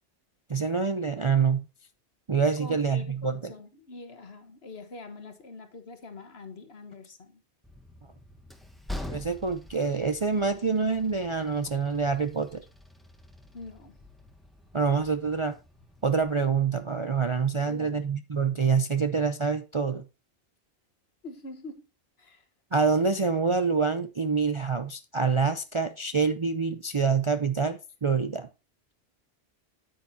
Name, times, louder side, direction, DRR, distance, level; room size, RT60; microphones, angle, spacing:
voice 1, 0.5-1.6 2.3-3.3 9.0-12.6 14.7-15.6 16.0-20.0 22.7-28.5, right 5 dB, 35° right, 0.5 m, -26 dB
voice 2, 2.6-7.4 13.5-14.0 17.6-18.1 21.2-21.9 22.2-22.4, left 3 dB, 60° left, 1.6 m, -44 dB
Train, 7.6-16.2, left 1 dB, ahead, 1.1 m, -45 dB
9.2 x 8.9 x 2.7 m
omnidirectional pair, 1.2 m